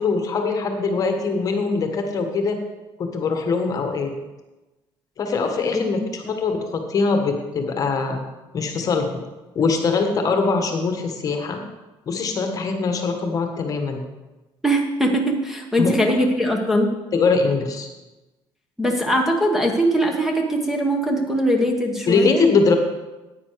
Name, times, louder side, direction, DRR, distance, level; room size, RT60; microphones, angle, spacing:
voice 1, 0.0-2.6 3.0-4.1 5.2-8.2 8.5-9.1 9.5-11.6 12.1-14.0 15.8-16.3 17.1-17.9 22.1-22.8, left 4 dB, 35° left, 5 dB, 1.3 m, -22 dB
voice 2, 14.6-16.9 18.8-22.5, equal, 5° right, 2 dB, 1.1 m, -21 dB
9.7 x 9.0 x 4.6 m, 1.1 s
cardioid pair, 140°, 10 cm